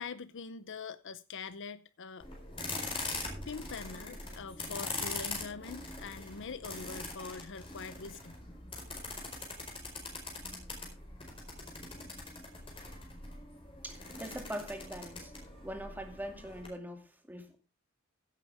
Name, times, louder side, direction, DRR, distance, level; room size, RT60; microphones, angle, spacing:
voice 1, 0.0-2.3 3.4-8.4, left 5 dB, 60° left, 0.7 m, -43 dB
sound 1, 2.2-16.7, left 3 dB, 25° left, 4.6 m, -42 dB
voice 2, 13.8-15.3 15.6-17.6, equal, 10° right, 2.3 m, -42 dB
16.5 x 8.9 x 3.5 m
head